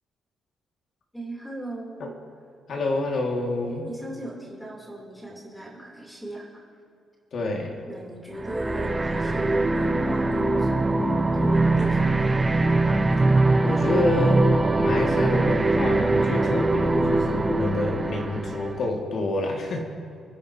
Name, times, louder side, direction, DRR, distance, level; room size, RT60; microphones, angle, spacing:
voice 1, 1.1-2.1 3.6-6.6 7.9-12.3, right 1 dB, ahead, -3 dB, 3.0 m, -38 dB
voice 2, 2.7-3.8 7.3-7.7 13.6-19.8, left 2 dB, 50° left, 0 dB, 1.9 m, -27 dB
sound 1, 8.4-18.9, right 2 dB, 15° right, 0.7 m, -22 dB
29.0 x 10.0 x 2.8 m, 2.4 s
cardioid pair, 150°, 0 cm